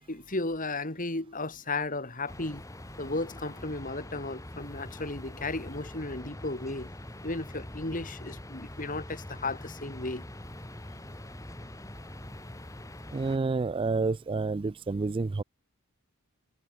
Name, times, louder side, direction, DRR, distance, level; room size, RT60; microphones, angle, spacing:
voice 1, 0.1-2.6 3.0-6.9 7.2-10.2, left 2 dB, 40° left, 2.7 m, -34 dB
sound 1, 2.3-13.4, left 1 dB, 15° left, 1.2 m, -44 dB
voice 2, 13.1-15.4, right 3 dB, 25° right, 0.3 m, -29 dB
head